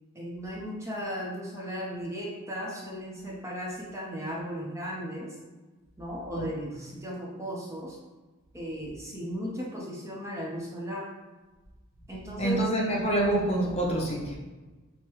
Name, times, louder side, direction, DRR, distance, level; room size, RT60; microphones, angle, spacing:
voice 1, 0.1-5.3 6.0-8.0 8.5-11.1 12.1-12.6, equal, 15° right, -4 dB, 0.8 m, -36 dB
voice 2, 12.4-14.4, right 1 dB, 30° left, -3 dB, 0.6 m, -26 dB
6.2 x 2.3 x 3.0 m, 1.2 s
head